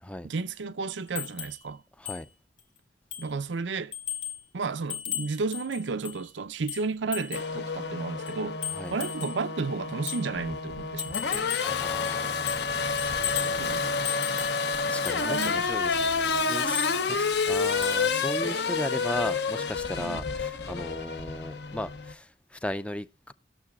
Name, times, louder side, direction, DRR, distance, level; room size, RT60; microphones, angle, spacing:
voice 1, 0.2-1.8 3.2-3.9 4.5-8.6 8.9-11.5 13.6-14.0 15.1-15.6 20.0-20.2, right 4 dB, 85° right, 0.6 m, -33 dB
sound 1, 1.2-1.6 2.1-2.2 2.6-2.7 3.1-3.4 3.9-4.4 4.9-6.2 6.7-7.5 8.3-9.4 10.1-10.2 11.0-11.8 12.0-12.7 13.0-13.6 14.0-14.6 15.0-15.6 16.6-16.9 17.8-18.1 18.4-18.5, left 11 dB, 85° left, 1.9 m, -36 dB
Race car auto racing / Accelerating revving vroom, 7.3-22.1, left 4 dB, 70° left, 0.9 m, -29 dB
voice 2, 11.6-14.0 14.8-23.3, left 1 dB, 5° left, 0.4 m, -37 dB
19.5 x 6.8 x 2.3 m
head